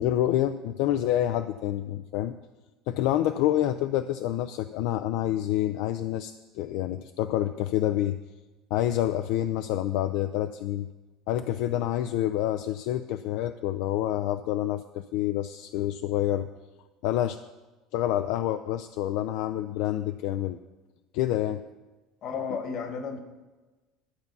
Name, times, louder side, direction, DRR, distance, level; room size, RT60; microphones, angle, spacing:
voice 1, 0.0-2.4 2.9-8.2 8.7-10.9 11.3-16.5 17.0-17.4 17.9-20.6 21.1-21.6, left 12 dB, 70° left, 10 dB, 0.4 m, -27 dB
voice 2, 22.2-23.2, left 5 dB, 50° left, 7 dB, 1.4 m, -33 dB
11.5 x 6.9 x 5.4 m, 1.2 s
cardioid pair, 135°, 0 cm